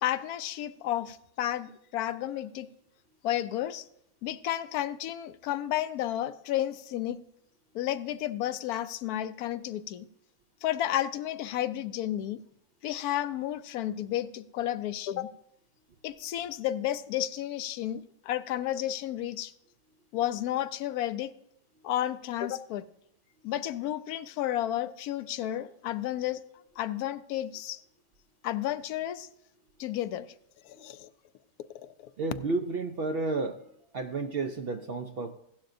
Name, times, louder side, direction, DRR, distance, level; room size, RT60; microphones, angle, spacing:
voice 1, 0.0-2.7 3.2-3.8 4.2-7.2 7.7-10.1 10.6-12.4 12.8-15.3 16.0-19.5 20.1-21.3 21.8-22.8 23.4-26.4 26.8-27.8 28.4-29.3 29.8-30.3 30.6-31.1 31.8-32.1, left 12 dB, 85° left, 1.1 m, -32 dB
voice 2, 32.2-33.6 33.9-35.3, right 3 dB, 60° right, 0.6 m, -31 dB
16.0 x 11.5 x 2.6 m
omnidirectional pair, 1.5 m